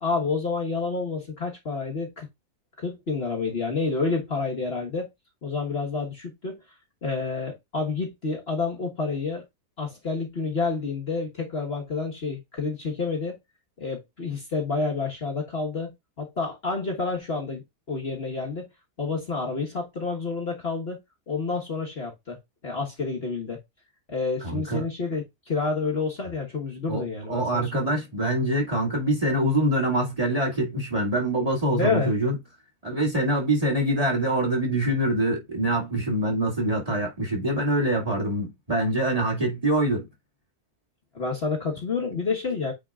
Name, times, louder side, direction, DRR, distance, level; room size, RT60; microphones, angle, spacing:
voice 1, 0.0-2.3 2.8-5.1 5.4-6.6 7.0-9.4 9.8-13.4 13.8-17.6 17.9-18.7 19.0-21.0 21.3-23.6 24.1-27.9 31.7-32.1 41.1-42.7, left 4 dB, 40° left, 1.6 m, -29 dB
voice 2, 24.4-24.8 26.9-32.4 32.8-40.1, right 1 dB, 25° right, 2.3 m, -25 dB
8.8 x 4.4 x 2.4 m
omnidirectional pair, 1.6 m